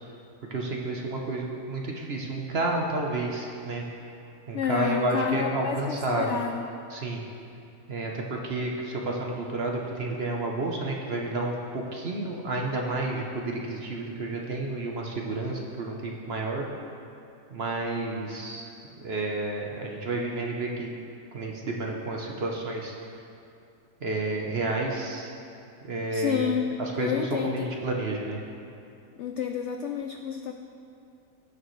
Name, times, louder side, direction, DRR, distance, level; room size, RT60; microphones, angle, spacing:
voice 1, 0.5-3.8 4.5-6.4 6.9-7.2 7.9-16.6 17.5-18.7 19.0-20.9 21.3-22.9 24.0-25.4 25.8-26.5 26.8-28.4, right 2 dB, 45° right, 0 dB, 0.9 m, -30 dB
voice 2, 4.5-6.6 26.1-26.7 27.0-27.7 29.2-30.5, left 7 dB, 80° left, 5 dB, 0.6 m, -29 dB
18.0 x 6.6 x 3.2 m, 2.6 s
omnidirectional pair, 1.7 m